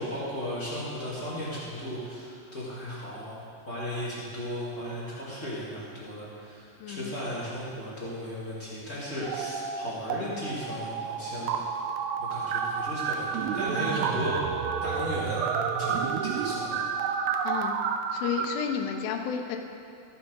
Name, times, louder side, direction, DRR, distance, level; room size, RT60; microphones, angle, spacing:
voice 1, 0.0-11.7 12.2-14.3 14.8-15.4 15.8-16.8, left 1 dB, 35° left, -9 dB, 1.2 m, -36 dB
voice 2, 6.8-7.2 17.4-17.8 18.1-19.6, left 7 dB, 80° left, 4 dB, 2.8 m, -31 dB
sound 1, 9.2-10.2 10.4-18.5, right 6 dB, 85° right, 2.6 m, -30 dB
15.0 x 6.7 x 5.3 m, 2.7 s
omnidirectional pair, 4.9 m